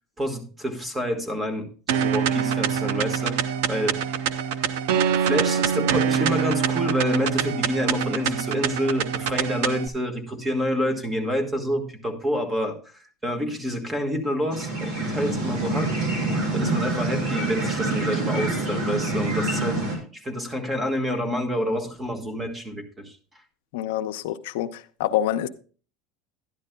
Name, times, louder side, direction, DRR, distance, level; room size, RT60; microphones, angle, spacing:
voice 1, 0.2-4.0 5.2-15.9 16.5-23.4, equal, 15° right, 1.5 m, -28 dB
sound 1, 1.9-9.9, right 8 dB, 85° right, 0.7 m, -25 dB
sound 2, 14.5-20.0, right 2 dB, 65° right, 3.4 m, -26 dB
voice 2, 23.7-25.5, left 12 dB, 85° left, 0.6 m, -26 dB
12.0 x 10.5 x 2.2 m
supercardioid pair, 135°, 0 cm